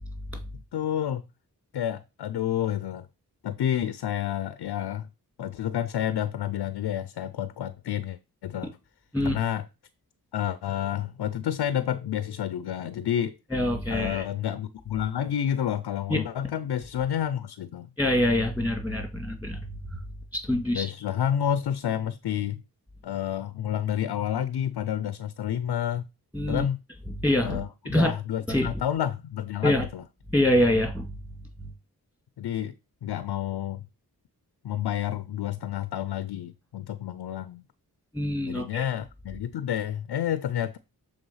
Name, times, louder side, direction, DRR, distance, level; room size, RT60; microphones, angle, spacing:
voice 1, 0.7-1.2 1.7-3.1 3.4-5.1 5.4-8.8 9.2-9.6 10.3-13.4 13.9-17.9 20.7-22.6 23.0-26.1 26.5-26.8 27.4-30.0 32.4-32.7 33.0-33.8 34.6-37.6 38.4-40.8, left 10 dB, 80° left, 0.6 m, -29 dB
voice 2, 13.5-14.2 16.1-16.2 18.0-20.0 20.3-20.9 26.3-26.7 27.2-28.1 28.5-28.7 29.6-29.9 30.3-31.2 31.6-31.7 38.1-38.8, left 1 dB, 5° right, 2.6 m, -25 dB
6.9 x 3.6 x 5.5 m
cardioid pair, 50°, 39 cm